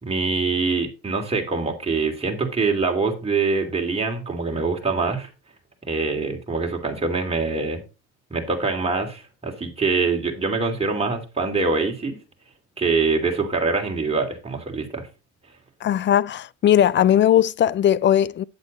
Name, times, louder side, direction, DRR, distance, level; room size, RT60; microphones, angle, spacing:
voice 1, 0.0-5.3 5.8-7.8 8.3-12.2 12.8-15.1, right 4 dB, 15° right, 3.1 m, -24 dB
voice 2, 15.8-18.4, left 10 dB, 30° left, 0.5 m, -18 dB
9.2 x 8.1 x 4.1 m
hypercardioid pair, 80°, 36 cm